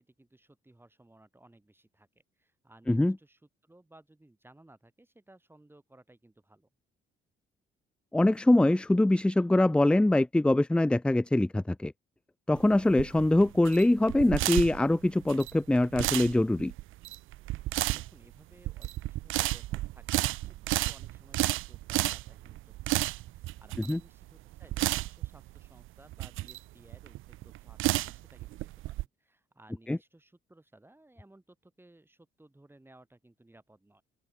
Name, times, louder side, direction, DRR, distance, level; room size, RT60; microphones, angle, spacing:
voice 1, 0.0-6.7 17.9-34.0, right 1 dB, 10° right, 7.7 m, -59 dB
voice 2, 8.1-11.9 12.5-16.7 23.9-24.0 29.9-30.0, left 1 dB, 5° left, 0.3 m, -23 dB
sound 1, 12.5-29.0, right 17 dB, 85° right, 0.7 m, -32 dB
open air
cardioid pair, 90°, 20 cm